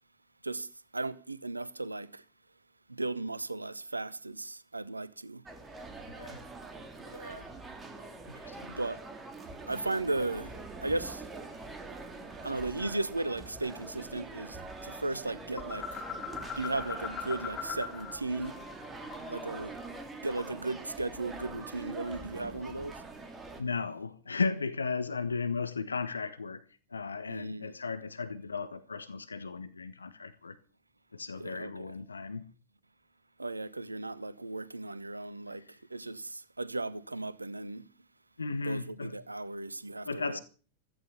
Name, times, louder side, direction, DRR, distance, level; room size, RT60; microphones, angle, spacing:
voice 1, 0.9-2.2 2.9-5.4 7.1-7.5 8.8-9.0 9.7-10.5 10.8-11.2 12.4-14.6 14.8-16.0 16.6-18.6 19.3-19.8 20.2-22.9 27.3-27.8 31.4-31.7 33.4-35.6 35.9-37.8 38.6-40.4, right 2 dB, 80° right, 1.1 m, -36 dB
sound 1, 5.5-23.6, right 3 dB, 15° right, 3.3 m, -44 dB
voice 2, 8.3-8.7 23.6-26.6 26.9-30.6 31.1-32.4 38.4-39.1 40.0-40.4, left 4 dB, 75° left, 1.3 m, -35 dB
sound 2, 15.6-18.2 18.4-20.7, left 6 dB, 25° left, 3.3 m, -41 dB
16.0 x 14.5 x 5.7 m
figure-of-eight pair, 90°, 0 cm